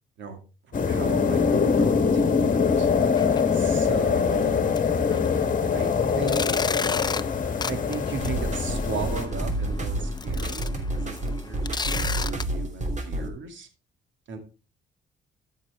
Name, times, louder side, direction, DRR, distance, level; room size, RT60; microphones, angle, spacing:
sound 1, 0.7-9.3, left 5 dB, 40° left, 1.4 m, -23 dB
voice 1, 0.8-2.9 3.5-4.7 5.7-6.8 7.7-13.7 14.3-14.4, right 5 dB, 70° right, 6 dB, 2.5 m, -36 dB
sound 2, 3.0-3.4 3.7-3.8 4.4-4.5 4.8-12.4, left 4 dB, 20° left, 0.5 m, -34 dB
sound 3, 8.2-13.3, right 1 dB, 35° right, 2.8 m, -29 dB
13.5 x 6.4 x 3.5 m, 0.33 s
cardioid pair, 90°, 20 cm